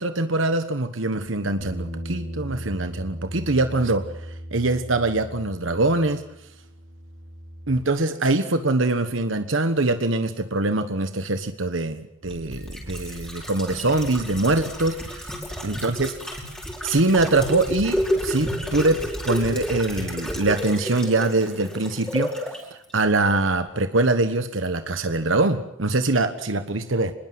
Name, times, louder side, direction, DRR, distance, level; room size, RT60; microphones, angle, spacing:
voice 1, 0.0-4.0 4.5-6.2 7.7-15.2 15.6-16.1 16.8-22.5 22.9-27.1, right 2 dB, 85° right, 9 dB, 1.4 m, -23 dB
Bass guitar, 1.6-7.8, equal, 65° right, 6.7 m, -37 dB
sound 1, 12.2-22.6 22.9-23.0, equal, 5° left, 5.3 m, -31 dB
26.5 x 21.0 x 7.9 m, 0.76 s
head